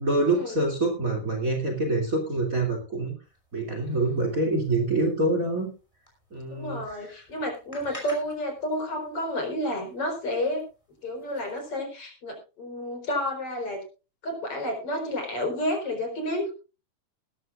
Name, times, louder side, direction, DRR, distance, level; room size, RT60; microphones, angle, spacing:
voice 1, 0.0-3.1 3.5-5.7 6.3-7.2, right 2 dB, 25° right, 3 dB, 3.0 m, -26 dB
sound 1, 3.2-11.7, left 1 dB, 10° left, 4.7 m, -51 dB
voice 2, 6.5-10.6 11.0-13.8 14.2-16.5, left 1 dB, 45° left, 3 dB, 5.1 m, -30 dB
20.0 x 13.0 x 2.5 m, 0.32 s
omnidirectional pair, 3.5 m